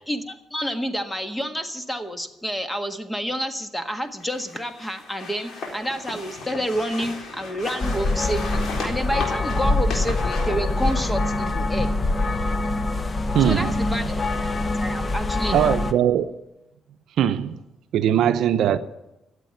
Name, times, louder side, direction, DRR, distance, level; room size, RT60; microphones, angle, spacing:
voice 1, 0.1-11.9 13.4-14.1 14.8-15.8, equal, 10° left, 1.6 m, -29 dB
sound 1, 4.2-11.5, left 3 dB, 65° left, 3.8 m, -36 dB
sound 2, 7.8-15.9, left 2 dB, 30° left, 1.0 m, -24 dB
voice 2, 13.3-13.8 15.5-16.3 17.2-17.6 17.9-18.8, right 10 dB, 75° right, 0.6 m, -20 dB
13.5 x 8.2 x 9.5 m
cardioid pair, 90°, 0 cm